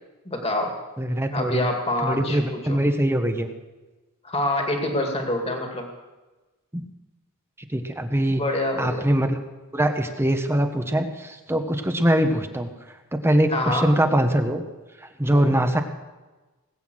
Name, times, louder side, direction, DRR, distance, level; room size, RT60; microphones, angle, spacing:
voice 1, 0.3-0.7 1.3-2.8 4.2-5.9 8.3-9.0 13.5-13.9 15.3-15.6, left 1 dB, 25° left, 3 dB, 2.2 m, -26 dB
voice 2, 1.0-1.7 2.0-3.5 6.7-6.9 7.7-8.4 8.8-9.4 9.7-12.7 13.1-14.6 15.2-15.8, right 1 dB, 10° right, 6 dB, 1.1 m, -22 dB
19.5 x 8.1 x 7.8 m, 1.2 s
head